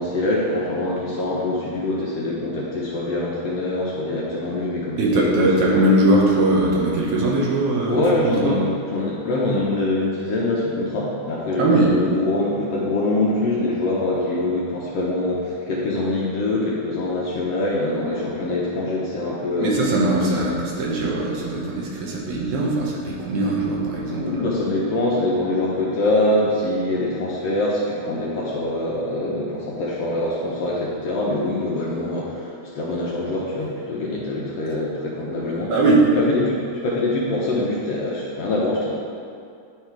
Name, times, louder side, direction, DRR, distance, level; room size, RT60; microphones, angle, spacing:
voice 1, 0.0-5.4 7.9-19.8 24.1-35.7 36.2-36.6 36.8-38.9, left 2 dB, 70° left, -5 dB, 1.6 m, -24 dB
voice 2, 5.0-8.6 11.6-11.9 19.6-24.4 35.7-36.0, right 2 dB, 70° right, -4 dB, 2.3 m, -20 dB
9.9 x 3.5 x 4.5 m, 2.4 s
omnidirectional pair, 3.6 m